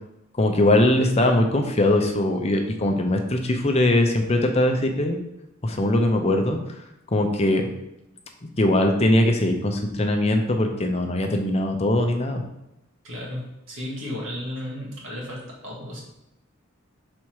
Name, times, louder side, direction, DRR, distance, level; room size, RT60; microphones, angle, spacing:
voice 1, 0.3-5.2 5.6-6.6 7.1-7.7 8.6-12.4, left 1 dB, 30° left, 4 dB, 0.7 m, -21 dB
voice 2, 13.0-16.0, left 1 dB, 70° right, -3 dB, 2.1 m, -34 dB
6.1 x 4.2 x 4.7 m, 0.87 s
head